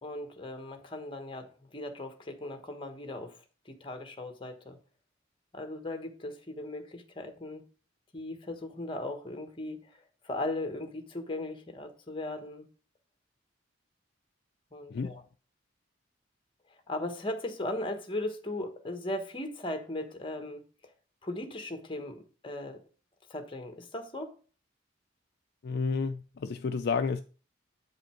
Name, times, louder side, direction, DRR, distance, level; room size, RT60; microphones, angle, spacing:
voice 1, 0.0-3.4 3.6-4.8 5.5-7.6 8.1-9.9 10.2-12.7 14.7-15.2 16.9-20.6 21.2-22.8 23.3-24.4, left 1 dB, 25° left, 1.2 m, -38 dB
voice 2, 14.9-15.2 25.6-27.2, left 5 dB, 55° left, 0.4 m, -31 dB
8.5 x 5.1 x 4.4 m
head